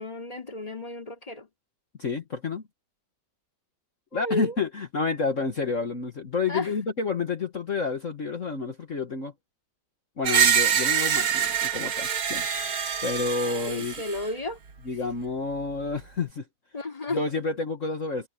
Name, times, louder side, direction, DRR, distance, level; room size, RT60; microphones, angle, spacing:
voice 1, 0.0-1.5 4.1-4.6 6.5-6.7 13.4-14.6 16.7-17.4, left 2 dB, 15° left, 3.0 m, -33 dB
voice 2, 2.0-2.6 4.1-9.3 10.2-12.5 13.0-13.9 14.8-16.4 17.1-18.3, left 4 dB, 40° left, 1.7 m, -29 dB
Screech, 10.2-14.3, right 8 dB, 75° right, 2.9 m, -25 dB
omnidirectional pair, 2.3 m